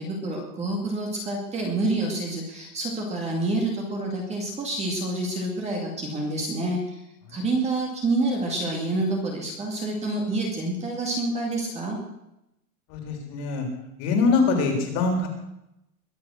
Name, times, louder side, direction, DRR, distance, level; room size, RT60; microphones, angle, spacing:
voice 1, 0.0-7.0 7.3-12.0, right 2 dB, 15° right, 0 dB, 2.2 m, -28 dB
voice 2, 12.9-13.7 14.0-15.3, left 4 dB, 30° left, 3 dB, 3.7 m, -23 dB
22.0 x 7.5 x 6.4 m, 0.85 s
supercardioid pair, 160°, 47 cm